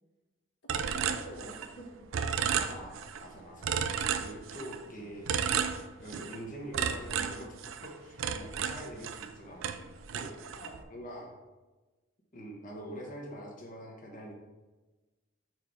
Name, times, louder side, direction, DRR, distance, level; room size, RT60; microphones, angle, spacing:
voice 1, 0.6-2.1 4.9-5.3 9.8-9.9 10.5-10.8, equal, 60° left, 0 dB, 1.2 m, -47 dB
sound 1, 0.7-1.8 2.1-3.2 3.6-4.8 5.3-6.4 6.7-9.3 9.6-10.8, right 7 dB, 70° right, 0.4 m, -33 dB
voice 2, 2.5-3.7 4.2-5.3 6.0-7.6 7.8-9.6 10.1-10.4 10.9-11.3 12.3-14.3, equal, 40° left, -1 dB, 1.1 m, -44 dB
4.7 x 4.5 x 4.9 m, 1.2 s
head